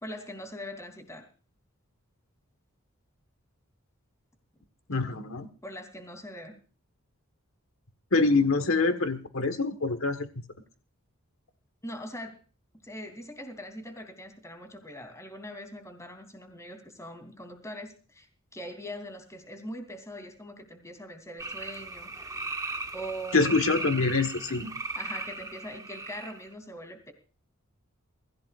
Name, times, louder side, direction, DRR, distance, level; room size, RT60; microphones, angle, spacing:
voice 1, 0.0-1.2 5.6-6.5 11.8-12.4 12.8-22.1 22.9-23.9 24.9-27.1, equal, 15° left, 6 dB, 3.1 m, -42 dB
voice 2, 4.9-5.5 8.1-10.3 23.3-24.7, left 3 dB, 70° left, 8 dB, 1.5 m, -25 dB
sound 1, 21.4-26.5, right 3 dB, 15° right, 1.2 m, -37 dB
24.0 x 15.5 x 2.5 m, 0.37 s
head